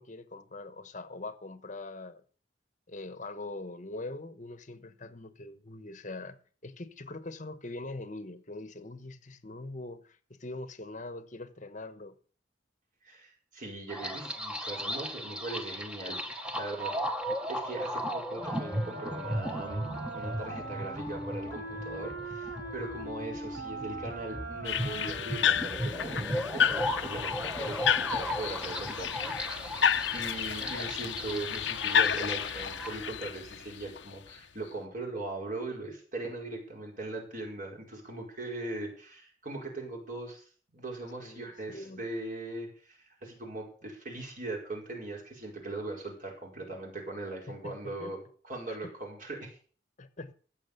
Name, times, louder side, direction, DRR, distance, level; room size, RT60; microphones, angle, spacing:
voice 1, 0.0-2.2 2.9-12.2 41.2-42.0 47.5-48.1 48.7-48.9 50.0-50.3, left 2 dB, 45° left, 1.1 m, -43 dB
voice 2, 13.0-16.9 17.5-19.9 20.1-49.6, right 2 dB, 50° right, 5.0 m, -40 dB
sound 1, 13.9-32.9, equal, 5° right, 1.2 m, -36 dB
Wind instrument woodwind instrument, 18.3-26.6, right 2 dB, 90° right, 6.4 m, -41 dB
sound 2, 24.6-34.4, left 7 dB, 90° left, 0.8 m, -31 dB
15.0 x 7.5 x 6.7 m
head